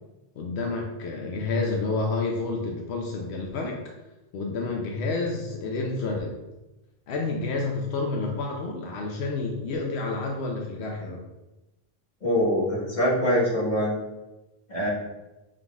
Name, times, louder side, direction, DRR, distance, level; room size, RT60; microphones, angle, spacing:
voice 1, 0.4-3.8 4.3-6.4 7.1-11.2, left 3 dB, 90° left, 1 dB, 0.9 m, -29 dB
voice 2, 12.2-13.9 14.7-14.9, equal, 45° left, -6 dB, 1.6 m, -23 dB
5.7 x 3.6 x 2.3 m, 1.0 s
omnidirectional pair, 1.1 m